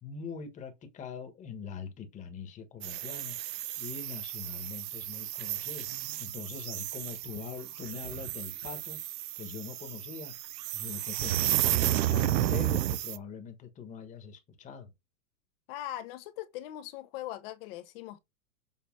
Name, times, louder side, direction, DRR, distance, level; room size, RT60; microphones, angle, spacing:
voice 1, 0.0-5.9 6.2-9.0 9.4-10.3 10.7-14.9, left 6 dB, 15° left, 1.4 m, -43 dB
sound 1, 2.8-13.2, right 13 dB, 80° right, 0.9 m, -32 dB
voice 2, 15.7-18.2, left 13 dB, 35° left, 0.9 m, -40 dB
7.4 x 3.2 x 6.0 m
hypercardioid pair, 150°, 49 cm